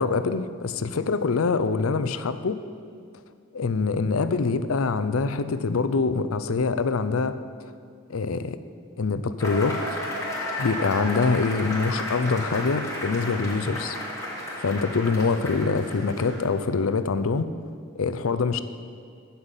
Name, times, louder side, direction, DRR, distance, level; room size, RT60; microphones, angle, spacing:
voice 1, 0.0-2.6 3.5-7.4 8.1-8.6 9.0-10.0 10.6-14.0 14.6-17.5 17.9-18.6, left 4 dB, 90° left, 12 dB, 0.6 m, -25 dB
Cheering / Applause / Crowd, 9.4-16.6, left 1 dB, 15° left, 3.2 m, -33 dB
11.5 x 5.7 x 8.2 m, 2.3 s
head